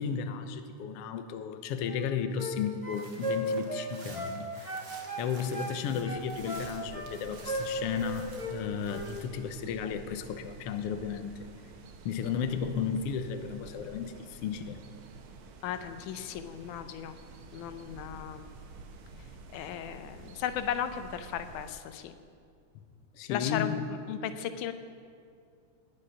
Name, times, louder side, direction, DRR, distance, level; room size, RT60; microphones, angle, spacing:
voice 1, 0.0-4.8 5.2-11.5 12.0-14.8 23.1-23.9, left 7 dB, 70° left, 8 dB, 1.5 m, -34 dB
sound 1, 1.8-2.6 2.8-4.4 4.6-5.8 6.0-7.1 7.4-8.6 8.8-9.1, equal, 15° right, 1.2 m, -36 dB
sound 2, 2.9-9.3, right 4 dB, 50° right, 1.8 m, -52 dB
sound 3, 5.9-21.7, right 4 dB, 65° right, 1.3 m, -49 dB
voice 2, 15.6-17.2 17.5-18.4 19.5-22.1 23.3-24.7, left 10 dB, 85° left, 10 dB, 2.2 m, -36 dB
19.5 x 8.7 x 5.6 m, 2.3 s
omnidirectional pair, 3.5 m